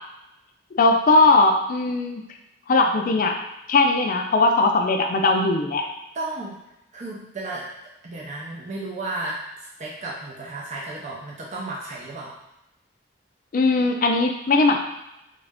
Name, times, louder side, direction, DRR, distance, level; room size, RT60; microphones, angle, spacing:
voice 1, 0.7-2.2 2.7-3.4 3.7-5.9 13.5-14.8, left 3 dB, 45° left, 3 dB, 0.4 m, -19 dB
voice 2, 6.1-6.6 6.9-7.7 8.0-12.4, right 2 dB, 40° right, -4 dB, 0.5 m, -33 dB
3.1 x 2.5 x 3.4 m, 0.90 s
head